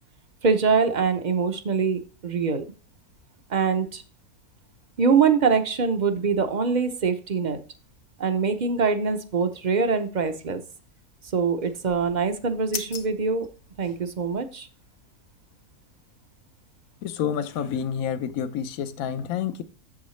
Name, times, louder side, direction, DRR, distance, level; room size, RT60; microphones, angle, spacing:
voice 1, 0.4-2.6 3.5-4.0 5.0-7.6 8.2-10.6 11.3-13.5 13.8-14.7, right 5 dB, 40° right, 0.7 m, -23 dB
sound 1, 11.6-14.4, left 6 dB, 55° left, 1.2 m, -40 dB
voice 2, 17.0-19.6, left 8 dB, 70° left, 1.1 m, -28 dB
8.5 x 7.1 x 3.2 m
omnidirectional pair, 1.6 m